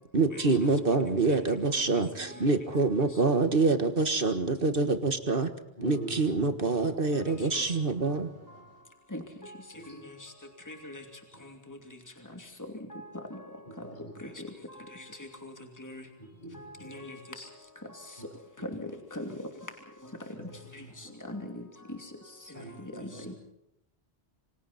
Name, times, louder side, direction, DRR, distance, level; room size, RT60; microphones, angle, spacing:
voice 1, 0.1-5.5 5.8-8.3, right 3 dB, 60° right, 9 dB, 1.8 m, -26 dB
voice 2, 5.8-7.0 7.6-8.8 9.7-10.2 11.3-11.4 13.6-14.3 16.2-17.0 18.2-18.3 20.4-21.1 22.5-23.3, right 1 dB, 50° left, 3 dB, 5.9 m, -46 dB
voice 3, 10.7-11.0 12.9-13.0 13.3-13.4 14.4-14.5 15.4-15.5 15.8-16.0 16.9-17.1 18.7-18.8 19.1-19.2 21.3-21.6 23.0-23.3, left 1 dB, 15° left, 4 dB, 2.8 m, -39 dB
27.5 x 25.5 x 4.3 m, 0.81 s
omnidirectional pair, 1.0 m